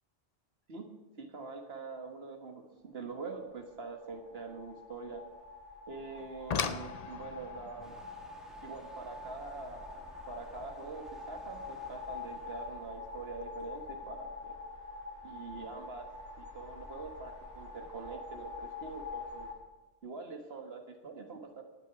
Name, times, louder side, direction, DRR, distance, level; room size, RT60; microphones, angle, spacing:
voice 1, 1.2-5.2 5.9-8.0 8.6-14.5 15.2-16.1 16.4-19.5 20.0-21.6, right 4 dB, 75° right, 4 dB, 1.8 m, -44 dB
sound 1, 3.6-19.5, left 3 dB, 15° left, 3.1 m, -46 dB
sound 2, 6.2-11.2 12.6-12.7 13.3-13.5 13.9-14.0, left 6 dB, 45° left, 0.6 m, -41 dB
Waves surf, 7.8-12.9, equal, ahead, 1.9 m, -59 dB
18.5 x 8.3 x 4.8 m, 1.2 s
omnidirectional pair, 1.1 m